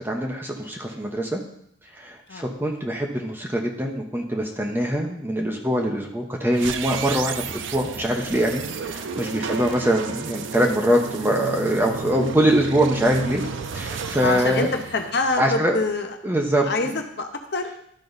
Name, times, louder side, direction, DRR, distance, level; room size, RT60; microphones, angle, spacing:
voice 1, 0.0-1.4 1.9-13.4 13.7-14.7 15.4-15.8 16.2-16.9, equal, 10° right, 0 dB, 0.9 m, -23 dB
sound 1, 6.5-15.7, right 5 dB, 70° right, 0.5 m, -32 dB
voice 2, 14.2-16.2 16.6-17.7, left 3 dB, 55° left, 5 dB, 0.7 m, -26 dB
12.5 x 4.1 x 4.0 m, 0.71 s
head